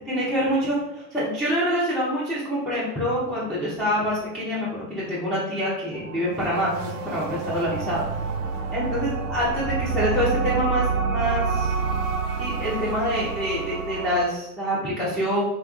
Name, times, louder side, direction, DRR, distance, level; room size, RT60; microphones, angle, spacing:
voice 1, 0.1-8.0 8.7-11.7 12.4-15.4, equal, ahead, -9 dB, 0.4 m, -26 dB
sound 1, 5.9-14.2, right 5 dB, 75° right, 0.6 m, -28 dB
2.9 x 2.3 x 2.3 m, 0.93 s
hypercardioid pair, 95°, 48 cm